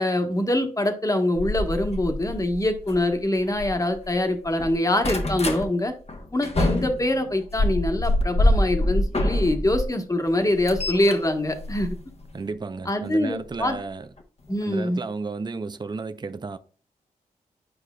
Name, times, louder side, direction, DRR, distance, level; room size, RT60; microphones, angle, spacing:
voice 1, 0.0-5.9 6.3-12.0 12.9-13.8 14.5-15.0, left 1 dB, 20° left, 1.2 m, -24 dB
sound 1, 1.4-4.1 4.5-5.6 6.1-9.9 10.3-12.5 13.5-13.7 14.2-14.3 14.5-14.6, left 1 dB, 40° left, 1.0 m, -26 dB
voice 2, 12.3-14.1 14.6-16.6, right 4 dB, 30° right, 0.5 m, -33 dB
9.5 x 4.8 x 2.3 m
cardioid pair, 50°, 15 cm